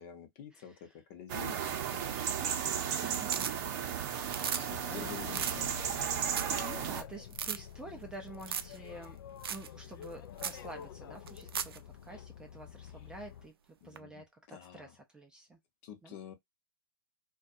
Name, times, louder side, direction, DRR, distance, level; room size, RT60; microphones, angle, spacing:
voice 1, 0.0-2.0 4.5-5.7 13.8-14.9 15.8-16.3, left 8 dB, 40° left, 0.8 m, -48 dB
voice 2, 0.5-1.0 3.0-3.4 4.9-5.1 6.6-9.2 9.5-15.6 16.0-16.2, right 2 dB, 5° right, 0.4 m, -49 dB
sound 1, 1.3-7.0, right 8 dB, 45° right, 0.7 m, -34 dB
sound 2, 2.1-2.7 3.0-3.9 4.2-4.6 4.9-5.0 5.3-5.6 6.0-6.1 6.3-6.6 6.9-7.0 7.3-7.6 8.4-8.8 9.0-9.1 9.4-9.7 10.0-10.1 10.4-10.6 11.3-11.8 14.0-14.1, right 8 dB, 85° right, 0.4 m, -37 dB
Boat Water vehicle, 4.7-13.5, left 9 dB, 70° left, 0.4 m, -48 dB
2.3 x 2.3 x 2.5 m
hypercardioid pair, 140°, 12 cm